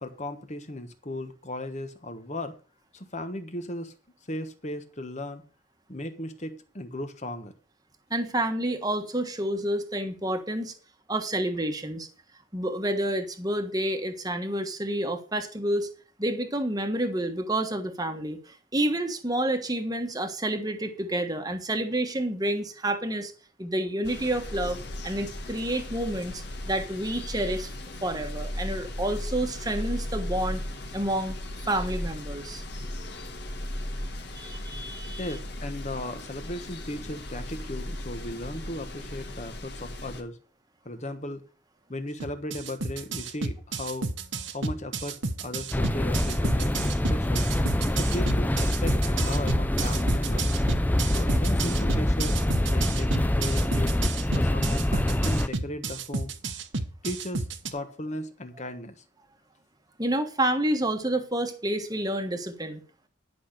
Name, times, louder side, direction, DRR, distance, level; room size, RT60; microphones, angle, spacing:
voice 1, 0.0-2.6 2.9-3.9 4.3-5.4 5.9-7.5 35.2-40.4 40.8-41.4 41.9-44.1 44.5-47.5 48.0-50.5 51.1-52.4 52.7-54.0 54.3-56.3 57.0-58.9, left 1 dB, 35° left, 8 dB, 1.2 m, -36 dB
voice 2, 8.1-10.7 11.1-12.1 12.5-15.9 16.2-23.3 23.6-24.8 25.0-27.7 28.0-30.6 30.9-31.3 31.6-32.6 34.3-35.3 60.0-62.8, right 1 dB, 20° right, 6 dB, 1.3 m, -29 dB
sound 1, 24.0-40.2, left 1 dB, 55° left, 1.5 m, -36 dB
sound 2, 42.2-57.7, right 3 dB, 65° right, 1.1 m, -31 dB
sound 3, 45.7-55.5, left 1 dB, 10° left, 0.4 m, -25 dB
11.0 x 5.9 x 6.5 m, 0.38 s
head